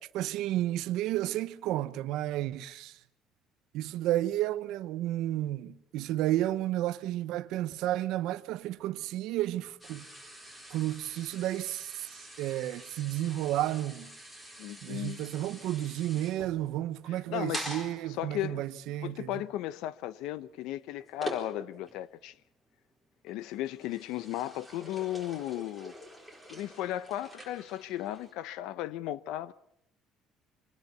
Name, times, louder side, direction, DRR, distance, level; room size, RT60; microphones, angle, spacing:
voice 1, 0.0-3.0 3.7-10.1 10.7-14.1 14.8-19.4, right 14 dB, 70° right, 1.0 m, -32 dB
sound 1, 9.8-22.0 22.4-22.7 23.3-28.3, equal, 10° left, 4.2 m, -46 dB
voice 2, 14.6-15.2 17.1-17.8 18.2-18.7 19.0-22.3 23.2-25.9 26.5-29.5, left 13 dB, 80° left, 0.9 m, -35 dB
25.0 x 20.0 x 6.9 m
cardioid pair, 165°, 0 cm